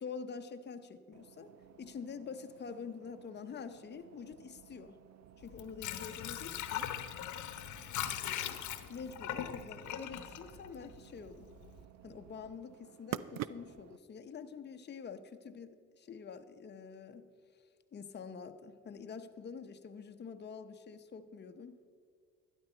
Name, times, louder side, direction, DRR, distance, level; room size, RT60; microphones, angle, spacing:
voice 1, 0.0-1.5 1.8-5.0 5.4-6.9 8.1-8.6 8.9-11.5 12.0-17.3 17.9-21.8, left 6 dB, 35° left, 8 dB, 0.8 m, -46 dB
sound 1, 1.1-14.0, right 12 dB, 60° right, 0.5 m, -50 dB
Water / Sink (filling or washing), 5.4-11.3 11.7-11.8, left 11 dB, 70° left, 0.9 m, -40 dB
12.0 x 11.0 x 4.4 m, 2.1 s
supercardioid pair, 80°, 31 cm